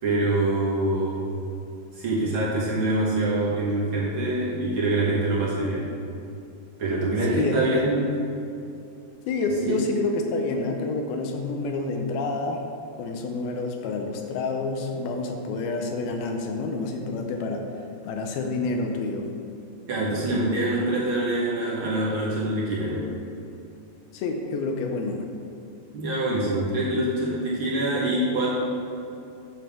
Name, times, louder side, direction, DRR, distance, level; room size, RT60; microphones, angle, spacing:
voice 1, 0.0-1.3 1.9-5.9 6.8-8.1 9.6-9.8 19.9-23.1 25.9-28.5, right 2 dB, 55° right, -7 dB, 1.5 m, -25 dB
voice 2, 7.3-8.1 9.3-12.6 13.0-17.7 18.0-19.3 24.1-25.3, left 3 dB, 85° left, 3 dB, 2.7 m, -28 dB
8.9 x 7.1 x 3.6 m, 2.6 s
omnidirectional pair, 4.3 m